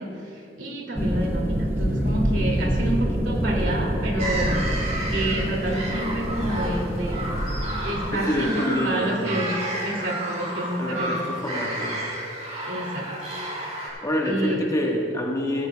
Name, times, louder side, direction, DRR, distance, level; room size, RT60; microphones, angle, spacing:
voice 1, 0.0-4.6 5.1-7.4 7.8-11.2 12.7-13.1 14.2-14.7, right 1 dB, 80° right, -1 dB, 2.4 m, -29 dB
sound 1, 1.0-8.4, equal, 10° right, 0.8 m, -26 dB
sound 2, 4.2-13.9, right 1 dB, 40° right, 3.3 m, -31 dB
voice 2, 8.1-9.2 10.8-12.1 13.7-15.7, equal, 20° left, -1 dB, 1.3 m, -27 dB
16.0 x 15.5 x 2.3 m, 2.6 s
head